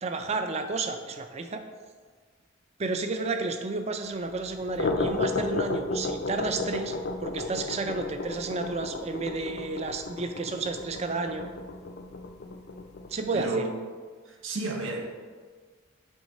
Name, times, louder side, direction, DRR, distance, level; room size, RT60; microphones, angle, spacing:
voice 1, 0.0-1.6 2.8-11.5 13.1-13.6, right 3 dB, 35° right, 7 dB, 0.4 m, -31 dB
sound 1, 4.5-13.5, left 3 dB, 50° left, 0.5 m, -33 dB
voice 2, 13.3-13.6 14.3-15.1, right 2 dB, 90° right, 1 dB, 1.0 m, -31 dB
8.0 x 3.6 x 4.2 m, 1.5 s
head